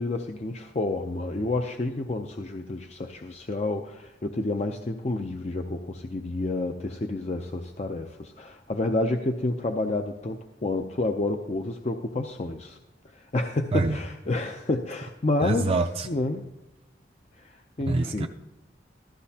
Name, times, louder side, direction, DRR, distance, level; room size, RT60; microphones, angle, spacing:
voice 1, 0.0-12.8 13.1-15.7 16.1-16.5 17.4-18.3, left 2 dB, 35° left, 4 dB, 0.5 m, -29 dB
voice 2, 15.4-16.1 17.9-18.3, right 3 dB, 30° right, 4 dB, 0.5 m, -25 dB
15.0 x 13.5 x 2.8 m, 0.94 s
head